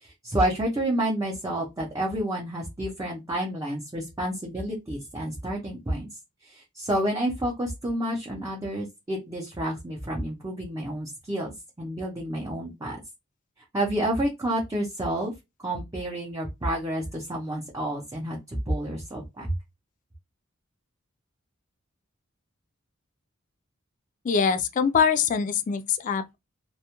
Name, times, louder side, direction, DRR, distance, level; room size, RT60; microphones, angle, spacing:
voice 1, 0.0-6.1 6.4-13.0 13.7-15.3 15.6-19.5, right 1 dB, 15° right, 0.6 m, -29 dB
voice 2, 24.2-26.4, left 6 dB, 40° left, 0.3 m, -23 dB
2.3 x 2.1 x 2.8 m
head